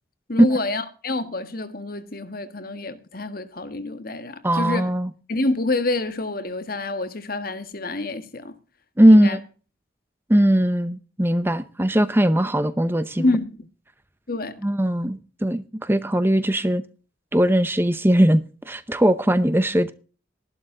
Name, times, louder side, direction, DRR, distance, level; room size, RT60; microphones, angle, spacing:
voice 1, 0.3-4.9 5.3-8.5 9.1-9.4 13.2-13.7 14.3-14.6, left 2 dB, 50° left, 1.6 m, -27 dB
voice 2, 4.4-5.1 9.0-9.4 10.3-13.2 14.6-16.8 17.3-19.9, equal, 10° right, 0.7 m, -19 dB
13.5 x 12.0 x 3.8 m
head